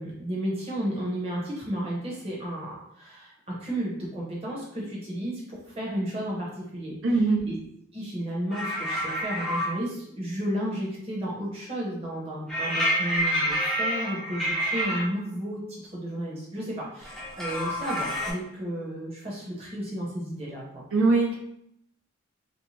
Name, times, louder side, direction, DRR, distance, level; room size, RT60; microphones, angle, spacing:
voice 1, 0.0-7.0 7.5-7.6 7.9-20.9, right 1 dB, 30° right, -5 dB, 0.8 m, -33 dB
voice 2, 7.0-7.4 20.9-21.4, right 3 dB, 75° right, -1 dB, 0.5 m, -21 dB
sound 1, 8.5-9.7 12.5-15.0 17.0-18.3, equal, ahead, 0.5 m, -28 dB
2.6 x 2.1 x 3.1 m, 0.76 s
head